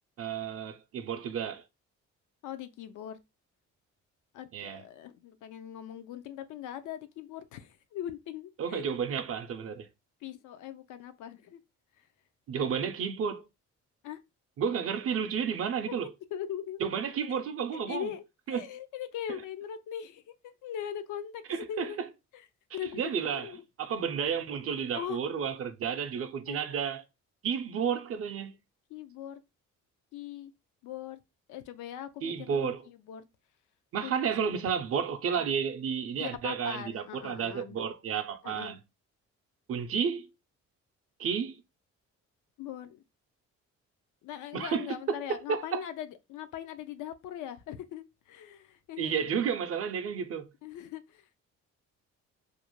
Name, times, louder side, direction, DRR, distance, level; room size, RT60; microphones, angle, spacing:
voice 1, 0.2-1.6 4.5-4.8 8.6-9.9 12.5-13.4 14.6-16.1 16.8-18.1 18.5-18.6 21.5-21.9 22.9-23.5 23.8-27.0 27.4-28.6 32.2-32.8 33.9-38.8 39.7-40.3 41.2-41.6 44.5-45.8 49.0-50.5, right 7 dB, 50° right, 0.5 m, -31 dB
voice 2, 2.4-3.2 4.3-8.9 10.2-11.6 12.0-12.1 14.0-14.2 15.9-16.8 17.2-22.0 22.3-22.5 22.7-23.6 23.9-24.1 24.9-25.2 26.5-26.6 28.9-29.4 30.1-30.5 30.8-31.2 31.5-33.2 34.0-34.6 35.4-35.6 36.2-37.8 38.4-38.7 42.6-43.0 44.2-49.1 50.6-51.4, left 10 dB, 80° left, 0.5 m, -41 dB
2.5 x 2.1 x 2.9 m
cardioid pair, 90°, 30 cm